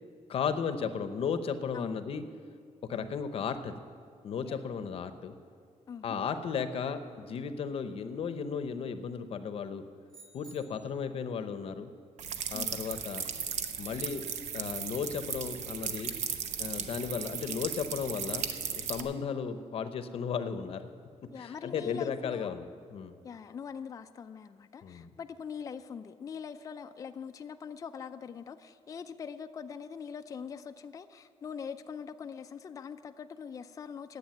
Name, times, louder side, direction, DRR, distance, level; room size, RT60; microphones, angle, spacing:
voice 1, 0.3-2.2 2.9-3.7 4.2-5.3 6.0-9.8 10.3-11.9 12.5-13.2 13.8-14.2 14.5-16.1 16.6-20.8 21.4-22.7 22.9-23.2 24.8-25.1, left 6 dB, 55° left, 10 dB, 0.7 m, -35 dB
voice 2, 5.9-6.2 12.5-12.8 19.1-19.2 21.3-22.6 23.2-34.2, left 6 dB, 30° left, 8 dB, 0.4 m, -43 dB
sound 1, 10.1-11.2, right 3 dB, 40° right, 3.3 m, -55 dB
sound 2, 12.2-19.0, right 7 dB, 75° right, 0.8 m, -36 dB
10.5 x 8.1 x 9.2 m, 2.3 s
cardioid pair, 155°, 12 cm